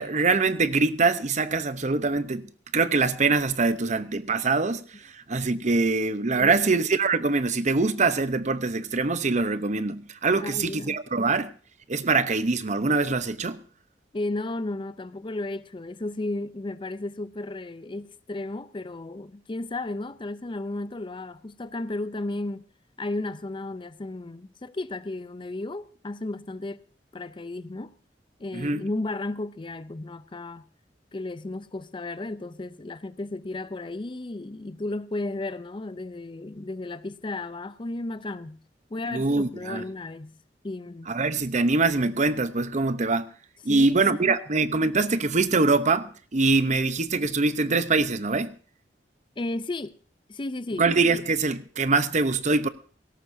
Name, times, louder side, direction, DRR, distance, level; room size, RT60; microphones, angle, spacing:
voice 1, 0.0-11.5 11.9-13.6 28.5-28.8 39.1-39.8 41.1-43.3 43.6-48.5 50.8-52.7, right 3 dB, 45° right, 0.8 m, -24 dB
voice 2, 6.3-6.7 10.3-11.0 14.1-22.7 23.0-26.8 27.1-27.9 28.4-30.6 31.1-38.6 38.9-40.4 40.6-41.1 43.7-44.4 49.4-49.9 50.3-50.9, left 2 dB, 30° left, 0.6 m, -34 dB
18.0 x 17.5 x 2.7 m
head